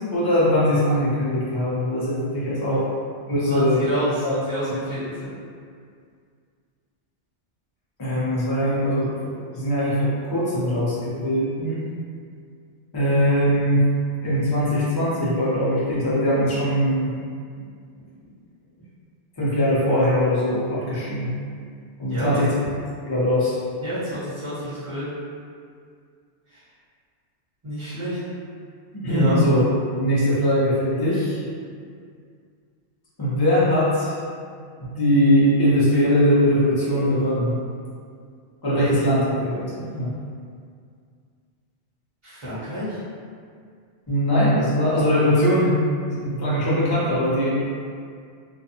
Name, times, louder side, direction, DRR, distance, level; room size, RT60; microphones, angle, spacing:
voice 1, 0.0-2.8 3.3-4.0 4.2-4.3 8.0-9.1 9.5-11.8 12.9-13.8 14.2-17.2 19.4-21.2 22.0-22.5 23.0-23.6 28.9-29.6 29.9-31.4 33.2-34.2 34.9-37.6 38.6-40.1 44.1-45.7 46.1-47.6, equal, 25° left, -10 dB, 0.6 m, -21 dB
voice 2, 3.4-5.3 22.1-22.4 23.8-25.1 27.6-28.2 29.0-29.5 42.2-43.0, equal, 25° right, -13 dB, 1.1 m, -29 dB
2.5 x 2.3 x 2.7 m, 2.2 s
omnidirectional pair, 1.2 m